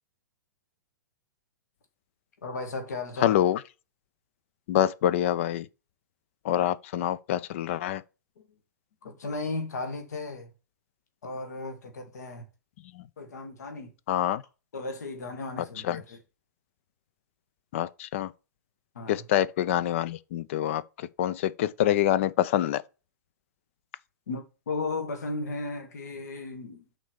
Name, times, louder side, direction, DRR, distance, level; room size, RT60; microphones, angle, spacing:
voice 1, 2.4-3.4 8.4-8.5 9.0-10.5 11.2-12.4 13.2-13.9 14.7-16.2 18.9-19.3 24.3-26.9, left 3 dB, 60° left, 1.6 m, -35 dB
voice 2, 3.2-3.6 4.7-5.7 6.4-8.0 13.0-13.1 14.1-14.4 15.8-16.0 17.7-18.3 19.1-20.8 21.2-22.8, left 12 dB, 40° left, 0.5 m, -26 dB
6.1 x 3.9 x 6.2 m
figure-of-eight pair, 110°, 10 cm